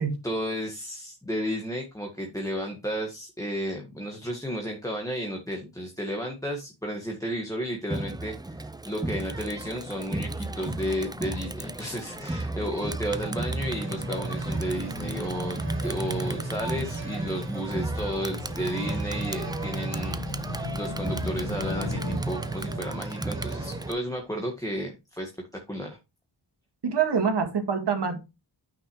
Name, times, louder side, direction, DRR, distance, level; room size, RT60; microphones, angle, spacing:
voice 1, 0.2-26.0, equal, 10° left, 1.6 m, -33 dB
Crowd, 7.9-23.9, right 2 dB, 10° right, 0.4 m, -35 dB
sound 1, 9.6-22.2, left 2 dB, 45° left, 1.3 m, -40 dB
sound 2, 12.7-24.0 24.6-24.7, right 2 dB, 30° right, 1.7 m, -36 dB
voice 2, 26.8-28.2, right 6 dB, 70° right, 2.0 m, -25 dB
9.5 x 5.9 x 3.1 m
wide cardioid pair, 80°, 43 cm